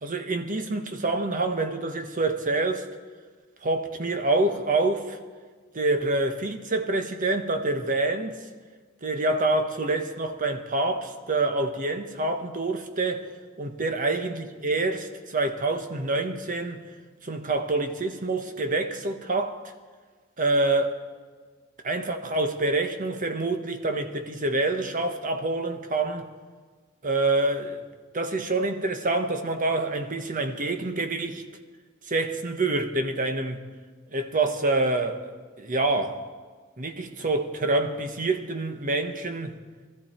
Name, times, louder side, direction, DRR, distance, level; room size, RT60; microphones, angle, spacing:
voice 1, 0.0-2.9 3.6-5.2 5.7-8.4 9.0-13.3 13.6-16.8 17.2-19.6 20.4-21.0 21.8-26.3 27.0-27.8 28.1-31.4 32.1-33.6 34.1-36.2 36.8-39.5, right 2 dB, 40° right, 1.2 m, -26 dB
19.5 x 14.0 x 4.4 m
head